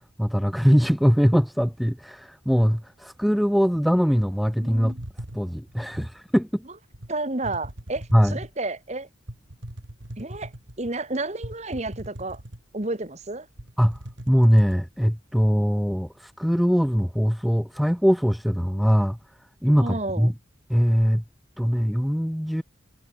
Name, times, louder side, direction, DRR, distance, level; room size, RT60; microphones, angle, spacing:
voice 1, 0.0-4.9 5.3-6.6 8.1-8.4 13.8-14.0 14.3-19.2 19.6-20.3 20.7-21.2 21.6-22.6, equal, ahead, 0.8 m, -21 dB
voice 2, 4.6-5.0 7.1-9.1 10.2-10.5 10.8-12.4 12.7-13.5 19.8-20.3, right 2 dB, 35° right, 1.7 m, -31 dB
sound 1, 4.7-6.2 6.9-7.1 7.4-8.6 9.3-10.9 11.4-12.9 13.2-13.3 13.6-14.8, right 1 dB, 70° right, 2.9 m, -40 dB
head